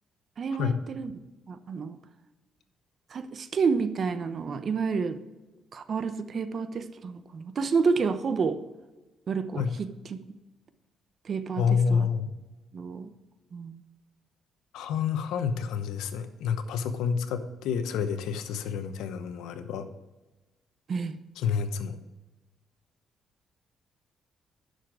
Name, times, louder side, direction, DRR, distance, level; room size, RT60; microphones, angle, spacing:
voice 1, 0.4-1.1 1.5-2.0 3.1-5.2 5.7-8.6 9.3-9.9 11.2-12.1 12.7-13.1 13.5-13.8 20.9-21.2, right 5 dB, 50° right, 11 dB, 0.8 m, -29 dB
voice 2, 11.6-12.3 14.7-19.9 21.4-22.0, left 6 dB, 90° left, 10 dB, 0.8 m, -28 dB
10.5 x 6.5 x 4.9 m, 1.1 s
cardioid pair, 90°, 0 cm